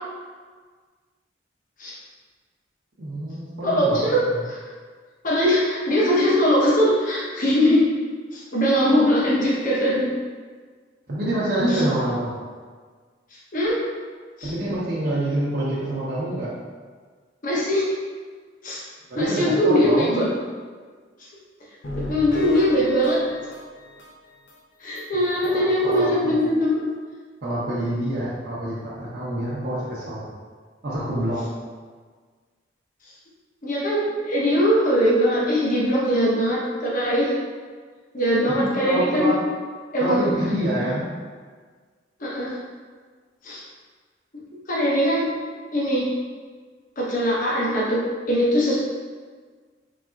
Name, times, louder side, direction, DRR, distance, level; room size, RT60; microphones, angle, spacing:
voice 1, 3.0-4.4 11.1-12.3 14.4-16.5 19.1-20.1 25.1-26.5 27.4-30.3 30.8-31.4 38.5-39.4 40.0-41.1, right 1 dB, 55° right, -8 dB, 0.8 m, -27 dB
voice 2, 3.6-4.6 5.2-7.9 8.3-10.1 11.7-11.8 13.5-13.8 14.4-14.5 17.4-17.9 18.6-18.8 19.2-20.3 21.9-23.2 24.8-26.9 33.6-37.3 38.1-39.4 39.9-40.3 42.2-42.5 43.4-43.6 44.7-45.3 45.7-46.1 47.0-48.8, equal, 45° left, -5 dB, 0.9 m, -21 dB
sound 1, 21.8-24.6 25.0-25.1 25.4-25.5 25.9-26.0, left 2 dB, 80° left, 0.6 m, -35 dB
4.0 x 3.6 x 2.4 m, 1.5 s
head